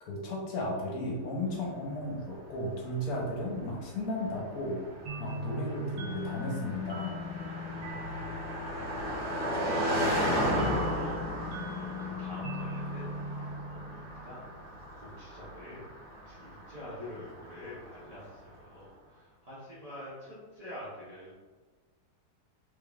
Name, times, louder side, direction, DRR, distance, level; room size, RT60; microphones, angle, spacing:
voice 1, 0.0-4.8 5.2-7.2, left 1 dB, 70° left, -2 dB, 1.3 m, -34 dB
Car passing by, 1.9-18.4, equal, 35° left, 1.0 m, -35 dB
sound 1, 5.1-14.4, left 2 dB, 85° right, 1.3 m, -40 dB
voice 2, 9.9-13.1 13.4-14.5 14.9-15.9 16.3-21.3, left 1 dB, 35° right, -10 dB, 0.6 m, -46 dB
3.6 x 3.2 x 2.3 m, 1.4 s
omnidirectional pair, 1.7 m